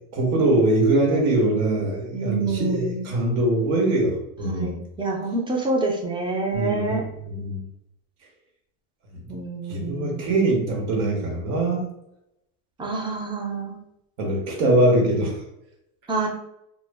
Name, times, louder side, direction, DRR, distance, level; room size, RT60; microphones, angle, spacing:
voice 1, 0.1-4.8 6.5-7.6 9.2-9.4 9.7-11.9 14.2-15.4, right 2 dB, 80° right, 0 dB, 1.0 m, -22 dB
voice 2, 2.1-3.1 4.4-7.0 9.3-10.3 12.8-13.8 16.1-16.3, right 2 dB, 10° right, 0 dB, 0.4 m, -27 dB
2.1 x 2.0 x 3.3 m, 0.80 s
supercardioid pair, 110°, 42 cm